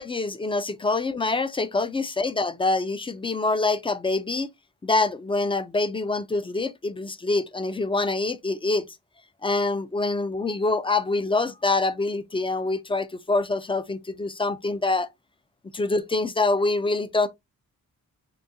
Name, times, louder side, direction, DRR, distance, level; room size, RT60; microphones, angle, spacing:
voice 1, 0.0-4.5 4.8-8.9 9.4-15.1 15.7-17.3, left 3 dB, 15° left, 0.3 m, -25 dB
3.8 x 2.7 x 2.6 m
wide cardioid pair, 95°, 35 cm